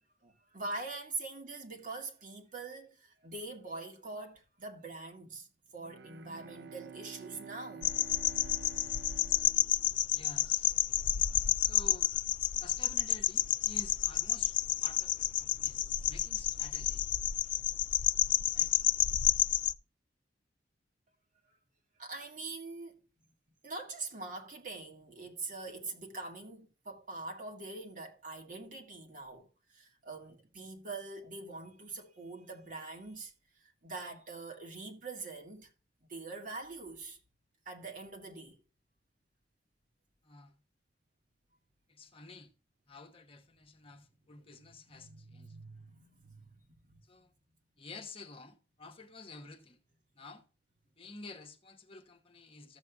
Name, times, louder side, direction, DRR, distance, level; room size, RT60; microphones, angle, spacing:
voice 1, 0.2-5.5 5.7-8.0 11.2-11.7 22.0-22.9 23.6-35.7 36.1-37.2 37.7-38.6 43.9-44.0 44.9-47.0, right 3 dB, 50° right, 2.0 m, -44 dB
Bowed string instrument, 5.8-10.6, right 6 dB, 65° right, 0.4 m, -51 dB
sound 1, 7.8-19.7, left 11 dB, 50° left, 0.3 m, -30 dB
voice 2, 10.1-10.8 11.6-12.1 12.6-17.1 18.5-18.8 40.2-40.6 41.9-42.5 42.9-45.6 47.0-47.3 47.8-49.8 50.1-50.4 51.0-52.8, left 3 dB, 30° left, 1.0 m, -51 dB
14.0 x 7.5 x 2.3 m
head